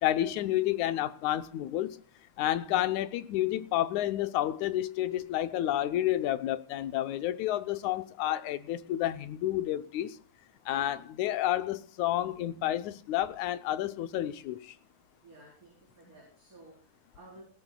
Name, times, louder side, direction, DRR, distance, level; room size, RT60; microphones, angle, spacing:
voice 1, 0.0-2.0 2.4-10.2 10.7-14.7, left 13 dB, 75° left, 2.1 m, -30 dB
voice 2, 15.2-17.4, right 2 dB, 25° right, 4.7 m, -54 dB
19.0 x 16.5 x 2.3 m
omnidirectional pair, 3.7 m